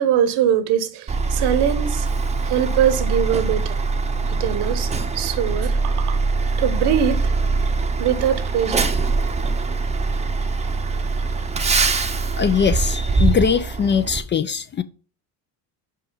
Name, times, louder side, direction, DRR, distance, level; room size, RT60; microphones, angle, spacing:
voice 1, 0.0-2.1 2.4-3.8 4.3-6.2 6.6-7.3 8.0-8.9, right 9 dB, 65° right, 1.1 m, -22 dB
Truck, 1.1-14.2, right 4 dB, 15° right, 0.7 m, -23 dB
voice 2, 12.4-14.8, left 7 dB, 30° left, 0.4 m, -21 dB
5.5 x 4.9 x 5.4 m
supercardioid pair, 100°, 43 cm